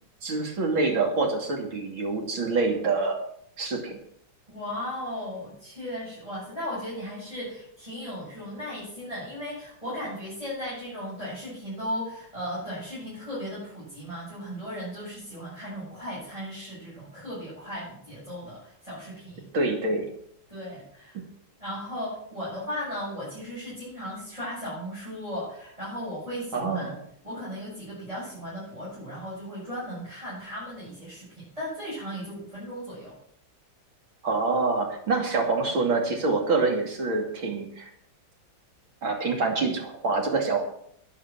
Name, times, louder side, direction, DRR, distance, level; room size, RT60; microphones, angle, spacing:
voice 1, 0.2-3.2 3.6-4.0 19.5-20.1 21.1-21.2 26.5-27.0 34.2-37.9 39.0-40.7, right 3 dB, 85° right, 2 dB, 3.5 m, -26 dB
voice 2, 4.5-19.5 20.5-21.2 21.6-27.0 27.2-33.2, equal, 15° right, -8 dB, 7.4 m, -36 dB
10.5 x 10.5 x 7.6 m, 0.68 s
omnidirectional pair, 2.1 m